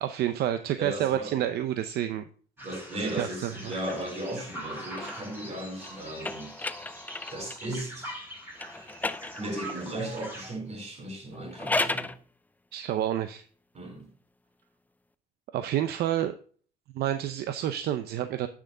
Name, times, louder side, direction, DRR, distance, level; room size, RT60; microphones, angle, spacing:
voice 1, 0.0-2.2 3.0-3.7 12.7-13.4 15.5-16.3 16.9-18.5, right 11 dB, 70° right, 0.7 m, -29 dB
voice 2, 0.8-1.4 2.6-6.5 7.3-8.1 9.4-12.1 13.7-14.1, right 1 dB, 40° right, 4.4 m, -36 dB
sound 1, 2.6-10.5, right 1 dB, 10° right, 5.3 m, -43 dB
sound 2, 3.6-7.7 8.5-9.9 11.3-12.2, left 2 dB, 10° left, 0.4 m, -35 dB
10.5 x 6.3 x 3.8 m
cardioid pair, 110°, 17 cm